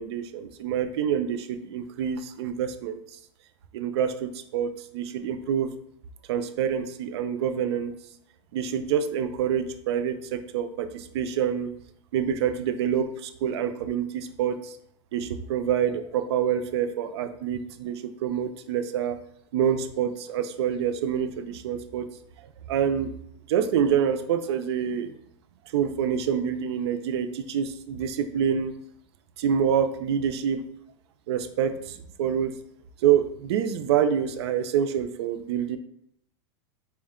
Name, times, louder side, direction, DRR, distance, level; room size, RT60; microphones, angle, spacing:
voice 1, 0.0-3.0 3.7-5.7 6.3-7.9 8.5-11.7 12.1-14.7 15.1-19.2 19.5-22.1 22.7-23.1 23.5-25.1 25.7-28.8 29.4-30.6 31.3-32.6 33.0-35.8, right 8 dB, 60° right, 9 dB, 0.4 m, -26 dB
4.3 x 2.1 x 3.5 m, 0.72 s
supercardioid pair, 175°, 16 cm